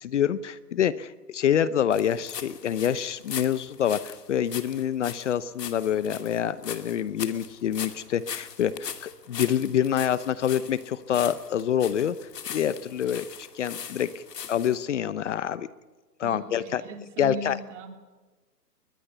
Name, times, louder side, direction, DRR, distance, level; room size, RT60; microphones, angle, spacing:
voice 1, 0.0-12.1 12.5-14.2 14.5-15.7 16.2-16.8 17.2-17.6, left 9 dB, 45° left, 16 dB, 0.9 m, -26 dB
sound 1, 1.9-14.8, left 8 dB, 75° left, 2.6 m, -40 dB
voice 2, 16.2-17.9, right 2 dB, 45° right, 5 dB, 3.6 m, -38 dB
21.5 x 21.5 x 6.8 m, 1.3 s
hypercardioid pair, 160°, 49 cm